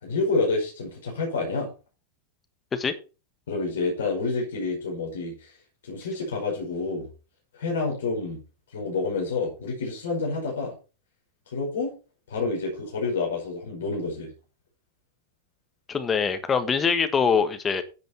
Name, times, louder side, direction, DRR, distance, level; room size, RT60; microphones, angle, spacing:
voice 1, 0.0-1.7 3.5-5.5 5.8-7.1 7.5-8.4 8.7-10.7 11.5-11.9 12.3-14.3, left 3 dB, 60° left, -1 dB, 5.2 m, -28 dB
voice 2, 15.9-17.8, left 6 dB, 20° left, 9 dB, 1.4 m, -23 dB
10.5 x 8.3 x 4.5 m, 0.33 s
figure-of-eight pair, 90°, 0 cm